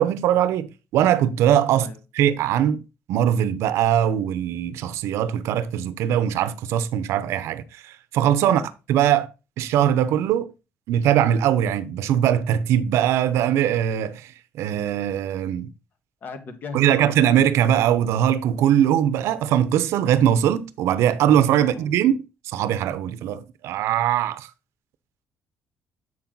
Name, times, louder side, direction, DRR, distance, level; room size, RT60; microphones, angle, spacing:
voice 1, 0.0-1.9 2.1-2.8 3.1-8.6 8.9-9.3 9.6-10.5 10.9-15.7 16.7-22.2 22.4-24.5, right 10 dB, 80° right, 0.7 m, -21 dB
voice 2, 16.2-16.8 21.5-21.9, left 4 dB, 45° left, 1.5 m, -37 dB
7.8 x 5.9 x 3.9 m
cardioid pair, 165°, 5 cm